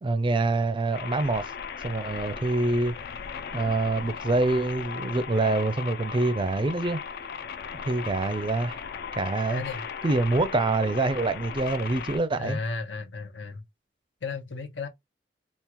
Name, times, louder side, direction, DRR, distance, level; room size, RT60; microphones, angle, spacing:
voice 1, 0.0-1.4 1.8-2.9 3.5-7.0 7.9-8.8 9.2-9.6 10.0-12.6, right 2 dB, 30° right, 0.4 m, -25 dB
sound 1, 0.9-12.2, left 6 dB, 60° left, 0.4 m, -37 dB
voice 2, 9.5-9.8 12.4-13.6 14.2-14.9, left 4 dB, 75° left, 0.9 m, -34 dB
3.6 x 2.4 x 2.9 m
head